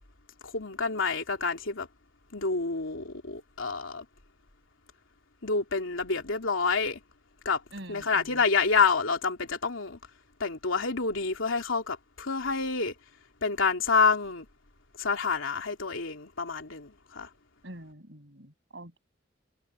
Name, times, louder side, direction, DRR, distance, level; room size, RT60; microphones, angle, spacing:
voice 1, 0.4-1.9 2.3-4.0 5.4-7.0 7.4-7.6 7.9-10.0 10.4-12.9 13.4-14.5 15.0-17.3, left 4 dB, 90° left, 3.1 m, -28 dB
voice 2, 7.7-8.4 17.6-19.0, right 1 dB, 60° right, 6.8 m, -46 dB
head